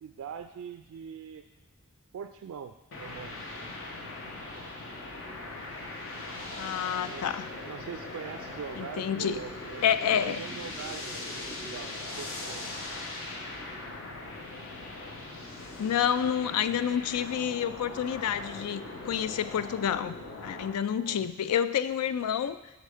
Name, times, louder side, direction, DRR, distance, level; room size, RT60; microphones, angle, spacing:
voice 1, 0.0-1.5 2.1-3.4 7.0-7.3 7.6-12.8 21.0-21.3, right 7 dB, 65° right, 7 dB, 0.3 m, -42 dB
sound 1, 2.9-20.7, left 2 dB, 60° left, 1.0 m, -40 dB
voice 2, 6.6-7.5 8.7-9.4 9.8-10.4 15.6-22.6, left 8 dB, 85° left, 13 dB, 0.3 m, -29 dB
6.5 x 5.1 x 4.9 m, 1.1 s
head